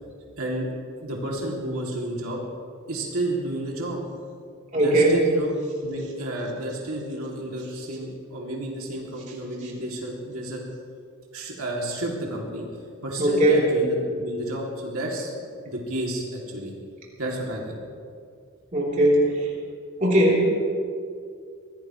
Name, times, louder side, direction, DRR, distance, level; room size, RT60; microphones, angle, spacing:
voice 1, 0.4-0.7 1.0-2.4 2.9-4.0 4.7-5.5 5.8-10.6 11.3-12.7 13.0-15.3 15.6-16.7 17.2-17.8, right 1 dB, 80° right, -2 dB, 2.7 m, -31 dB
voice 2, 4.7-5.2 13.2-13.7 18.7-19.5 20.0-20.5, right 1 dB, 35° right, -4 dB, 3.5 m, -19 dB
23.5 x 17.0 x 3.2 m, 2.3 s
head